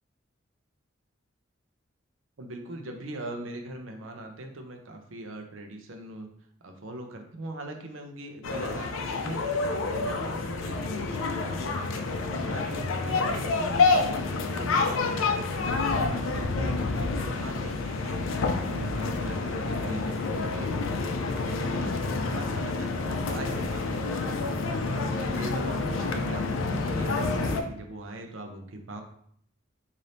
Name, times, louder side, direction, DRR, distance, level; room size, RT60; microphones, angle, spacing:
voice 1, 2.4-6.3 6.6-11.8 12.4-20.8 21.3-24.7 25.1-29.0, right 1 dB, 85° right, 3 dB, 0.7 m, -40 dB
sound 1, 8.4-27.6, left 3 dB, 90° left, 0.4 m, -28 dB
3.3 x 2.7 x 4.0 m, 0.66 s
head